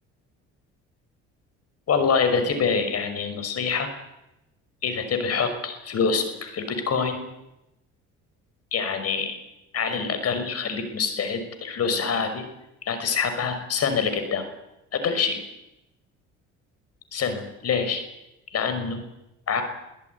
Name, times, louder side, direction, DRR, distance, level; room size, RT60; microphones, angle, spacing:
voice 1, 1.9-3.9 4.8-7.2 8.7-9.4 9.7-12.4 12.8-14.4 14.9-15.4 17.1-18.0 18.5-19.0 19.5-19.6, left 5 dB, 50° left, 9 dB, 5.8 m, -25 dB
23.5 x 16.5 x 9.6 m, 0.90 s
supercardioid pair, 80°, 31 cm